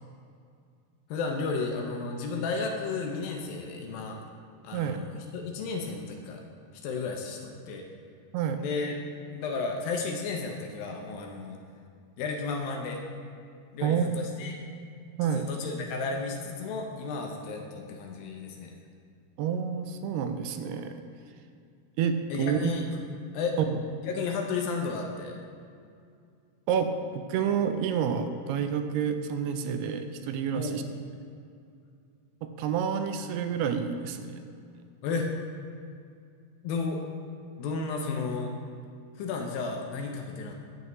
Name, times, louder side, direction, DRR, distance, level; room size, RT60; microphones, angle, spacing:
voice 1, 1.1-4.2 4.6-6.4 6.8-7.8 8.6-9.0 9.3-11.6 12.2-13.0 13.7-14.6 15.2-18.7 22.3-22.8 23.3-23.6 24.0-25.4 30.5-30.8 35.0-35.3 36.6-37.0 37.6-38.5 39.2-40.6, left 4 dB, 80° left, 2 dB, 2.2 m, -33 dB
voice 2, 4.7-5.0 8.3-8.6 13.8-14.2 15.2-15.5 19.4-21.0 22.0-22.7 23.7-23.8 26.7-30.8 32.4-34.4, right 7 dB, 85° right, 8 dB, 2.5 m, -29 dB
9.2 x 8.0 x 3.1 m, 2.3 s
omnidirectional pair, 4.6 m